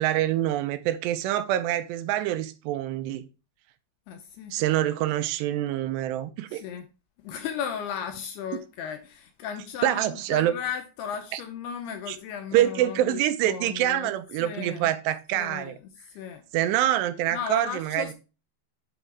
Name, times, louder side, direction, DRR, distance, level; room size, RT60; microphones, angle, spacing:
voice 1, 0.0-3.2 4.5-6.6 9.8-10.6 11.3-11.4 12.1-12.2 12.5-15.8 16.5-18.1, right 13 dB, 85° right, 2.7 m, -26 dB
voice 2, 4.1-4.5 6.5-6.9 7.2-14.1 14.4-14.9 15.3-15.8 16.1-16.4 17.3-18.1, left 8 dB, 80° left, 2.5 m, -35 dB
10.0 x 3.9 x 4.6 m
omnidirectional pair, 5.1 m